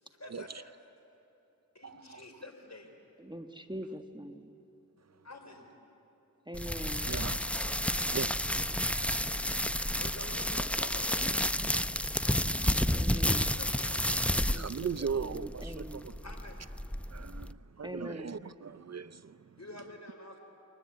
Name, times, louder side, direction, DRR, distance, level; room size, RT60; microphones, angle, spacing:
voice 1, 0.0-0.9 1.7-2.9 5.2-5.8 10.0-11.2 13.1-14.0 16.2-16.7 19.6-20.4, left 2 dB, 50° left, 4.4 m, -48 dB
voice 2, 1.8-2.2 7.0-7.5 8.1-8.3 12.6-12.8 14.6-16.1 17.1-19.4, right 6 dB, 50° right, 0.6 m, -38 dB
voice 3, 3.2-4.5 6.5-7.1 13.0-13.5 14.5-16.1 17.8-18.4, equal, 15° right, 1.4 m, -43 dB
sound 1, 6.5-17.5, equal, 5° left, 0.7 m, -31 dB
30.0 x 23.0 x 8.7 m
cardioid pair, 40°, 34 cm